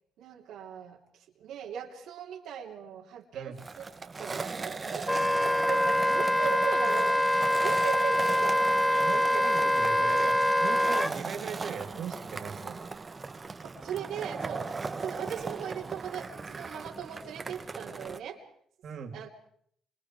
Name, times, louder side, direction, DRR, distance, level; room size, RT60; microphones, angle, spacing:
voice 1, 0.2-7.3 7.6-8.7 9.3-9.5 10.0-10.3 13.6-18.4 19.1-19.3, right 8 dB, 85° right, -1 dB, 3.0 m, -39 dB
Skateboard, 3.6-18.2, right 4 dB, 30° right, 1.6 m, -39 dB
Wind instrument woodwind instrument, 5.1-11.1, equal, 5° left, 0.8 m, -25 dB
voice 2, 8.9-12.8 18.8-19.1, right 7 dB, 65° right, 5 dB, 3.2 m, -39 dB
27.0 x 25.5 x 4.8 m, 0.65 s
cardioid pair, 90°, 0 cm